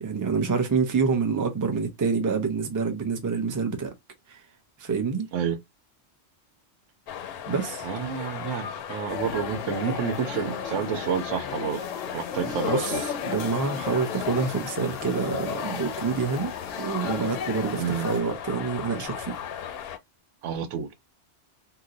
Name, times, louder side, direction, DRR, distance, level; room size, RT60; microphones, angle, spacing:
voice 1, 0.0-3.9 4.3-4.4 4.8-5.3 7.5-7.8 12.6-16.5 16.8-19.4, right 5 dB, 25° right, 0.4 m, -27 dB
sound 1, 7.1-20.0, left 9 dB, 65° left, 0.7 m, -37 dB
voice 2, 7.8-11.8 12.1-13.0 17.7-18.1 20.4-20.9, right 7 dB, 80° right, 1.0 m, -29 dB
sound 2, 9.1-18.2, left 7 dB, 90° left, 1.0 m, -34 dB
2.9 x 2.1 x 3.7 m
omnidirectional pair, 1.2 m